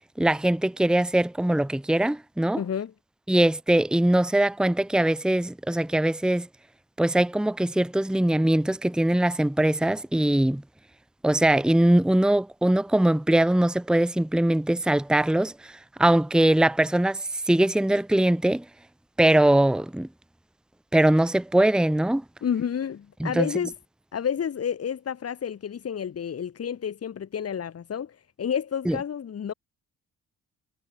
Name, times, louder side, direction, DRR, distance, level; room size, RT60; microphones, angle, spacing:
voice 1, 0.2-2.6 3.3-6.5 7.0-10.6 11.2-18.6 19.2-20.1 20.9-22.2 23.2-23.5 28.9-29.0, right 1 dB, 5° right, 1.0 m, -22 dB
voice 2, 2.6-2.9 22.4-23.7 24.1-29.5, left 8 dB, 55° left, 5.3 m, -30 dB
cardioid pair, 90°, 30 cm